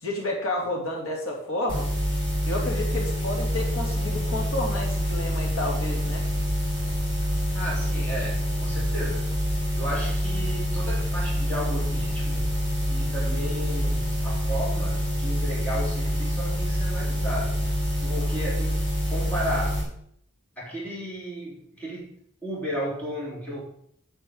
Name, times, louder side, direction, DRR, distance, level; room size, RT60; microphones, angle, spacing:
voice 1, 0.0-1.9 2.4-6.2, left 1 dB, 80° left, -1 dB, 2.9 m, -30 dB
sound 1, 1.7-19.8, equal, 25° left, 4.1 m, -26 dB
voice 2, 7.5-9.3 9.8-12.5 12.9-17.6 18.0-18.8 19.1-19.8 20.6-22.1 22.4-23.6, equal, 5° left, -6 dB, 3.9 m, -34 dB
9.7 x 5.5 x 8.0 m, 0.68 s
head